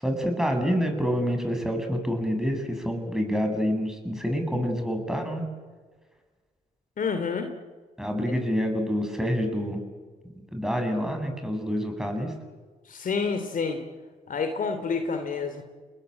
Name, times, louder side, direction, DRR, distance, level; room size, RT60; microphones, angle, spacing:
voice 1, 0.0-5.5 8.0-9.8 10.5-12.3, equal, 5° right, 4 dB, 7.9 m, -27 dB
voice 2, 7.0-7.5 12.9-13.8 14.3-15.6, left 5 dB, 55° left, 8 dB, 2.9 m, -28 dB
29.5 x 21.0 x 9.0 m, 1.4 s
hypercardioid pair, 55°, 17 cm